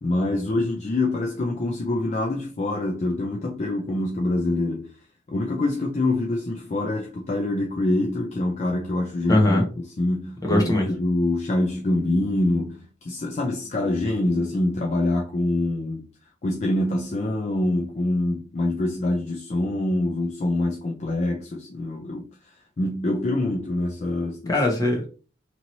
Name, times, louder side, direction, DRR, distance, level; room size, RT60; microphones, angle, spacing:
voice 1, 0.0-4.9 5.3-9.7 10.0-16.0 16.4-22.3 22.8-24.6, left 2 dB, 35° left, 0.4 m, -25 dB
voice 2, 9.3-9.7 10.4-10.9 24.5-25.1, left 1 dB, 20° left, 0.9 m, -21 dB
2.9 x 2.8 x 2.6 m
head